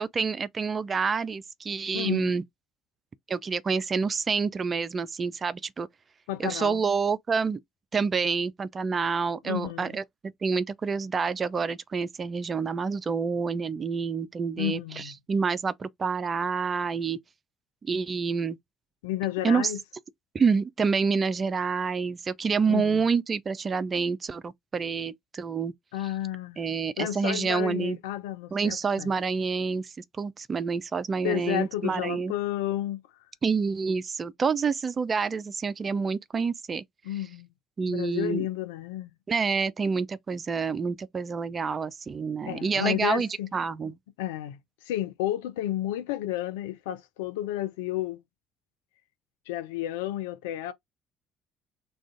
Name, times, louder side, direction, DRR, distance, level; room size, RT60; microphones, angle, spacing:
voice 1, 0.0-2.4 3.3-5.9 6.4-7.6 7.9-10.0 10.4-17.2 17.8-18.6 19.4-19.7 20.3-25.7 26.6-28.0 28.5-29.9 30.2-32.3 33.4-36.8 37.8-38.4 39.3-43.9, right 5 dB, 35° right, 0.3 m, -28 dB
voice 2, 1.9-2.3 6.3-6.8 9.4-10.0 14.6-15.1 19.0-19.8 22.7-23.0 25.9-26.6 27.0-29.1 31.2-33.0 37.0-37.5 37.9-39.1 42.4-43.5 44.2-44.6 44.8-48.2 49.5-50.7, left 13 dB, 70° left, 0.4 m, -31 dB
2.4 x 2.3 x 3.7 m
figure-of-eight pair, 50°, 0 cm